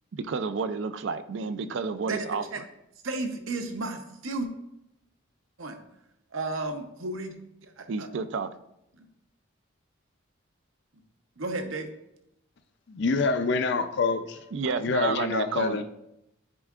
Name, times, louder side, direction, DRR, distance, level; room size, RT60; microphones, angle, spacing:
voice 1, 0.1-2.4 7.9-8.5 14.5-15.8, right 5 dB, 60° right, 0.4 m, -30 dB
voice 2, 2.1-2.6 3.0-4.5 5.6-5.8 6.3-7.3 7.6-8.1 8.9-9.1 11.4-11.9, right 2 dB, 75° right, 0.8 m, -33 dB
voice 3, 12.9-14.4 14.8-15.8, left 4 dB, 55° left, 0.5 m, -26 dB
9.7 x 4.4 x 2.4 m
head